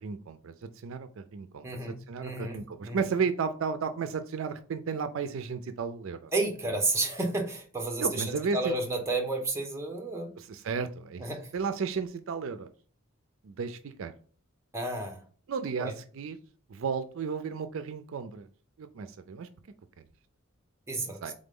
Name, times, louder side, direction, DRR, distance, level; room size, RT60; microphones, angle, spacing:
voice 1, 0.0-6.3 6.7-6.8 8.0-8.7 10.4-12.7 13.4-14.1 15.5-16.4 16.7-18.5 18.8-19.5 21.2-21.3, right 5 dB, 65° right, 10 dB, 0.4 m, -34 dB
voice 2, 1.6-3.0 6.3-10.3 11.2-11.5 14.7-15.2 15.8-15.9 20.9-21.2, right 2 dB, 15° right, 2 dB, 0.8 m, -31 dB
3.9 x 3.7 x 3.6 m, 0.42 s
head